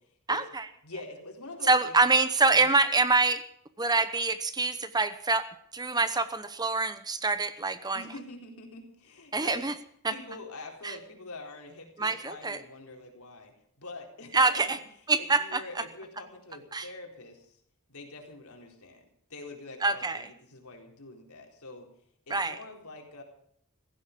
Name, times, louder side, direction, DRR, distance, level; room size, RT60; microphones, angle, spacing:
voice 1, 0.8-2.0 2.5-2.7 7.9-9.7 10.1-14.7 15.2-17.6 17.9-19.0 19.3-21.9 22.3-23.2, left 2 dB, 70° left, 2 dB, 4.2 m, -45 dB
voice 2, 1.7-3.4 3.8-5.5 5.7-8.0 9.3-9.7 10.8-10.9 12.0-12.6 14.3-14.8 15.1-15.6 16.7-16.8 19.8-20.3 22.3-22.5, right 3 dB, 20° right, 12 dB, 0.9 m, -25 dB
16.5 x 15.5 x 5.2 m, 0.67 s
head